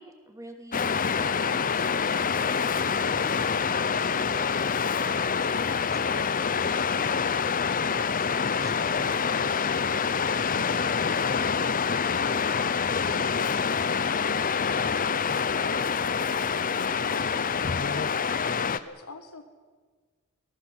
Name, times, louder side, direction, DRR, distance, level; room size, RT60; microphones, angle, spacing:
voice 1, 0.0-10.1, right 1 dB, 15° right, 5 dB, 2.8 m, -49 dB
Waves surf, 0.7-18.8, left 6 dB, 40° left, 0.7 m, -26 dB
voice 2, 11.4-17.9 18.3-19.5, left 2 dB, 80° left, 6 dB, 1.8 m, -46 dB
24.5 x 19.0 x 7.9 m, 1.5 s
head